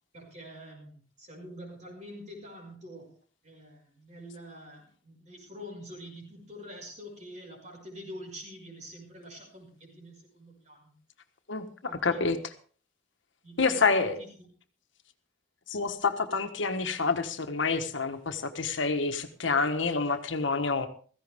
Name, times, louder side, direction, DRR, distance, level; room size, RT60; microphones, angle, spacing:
voice 1, 0.1-3.1 3.4-10.9 11.8-12.2 13.4-14.3, equal, 40° right, 1 dB, 5.6 m, -46 dB
voice 2, 12.0-12.4 13.6-14.2 15.7-20.9, left 4 dB, 85° left, 7 dB, 1.4 m, -27 dB
16.0 x 15.0 x 3.6 m, 0.43 s
head